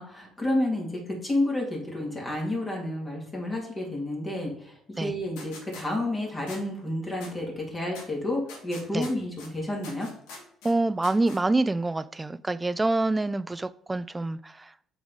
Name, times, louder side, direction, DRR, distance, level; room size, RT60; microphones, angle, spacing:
voice 1, 0.0-10.1, left 1 dB, 25° left, -2 dB, 2.4 m, -30 dB
sound 1, 5.4-5.8 6.5-6.6 7.2-7.3 7.9-8.1 8.5-9.5 9.8-10.7 11.0-11.4, left 3 dB, 90° left, 1.8 m, -43 dB
voice 2, 10.6-14.7, right 2 dB, 15° right, 15 dB, 0.4 m, -26 dB
7.1 x 4.1 x 4.7 m, 0.70 s
cardioid pair, 90°, 0 cm